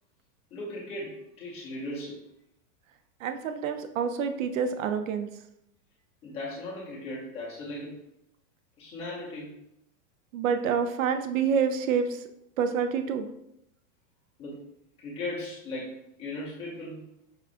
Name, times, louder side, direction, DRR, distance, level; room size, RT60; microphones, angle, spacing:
voice 1, 0.5-2.2 6.2-7.9 8.8-9.5 14.4-14.6 15.0-17.0, left 1 dB, 15° left, -6 dB, 0.6 m, -37 dB
voice 2, 3.2-5.3 10.3-12.2 12.6-13.3, right 6 dB, 85° right, 8 dB, 0.5 m, -27 dB
5.7 x 2.3 x 2.4 m, 0.80 s
supercardioid pair, 170°, 39 cm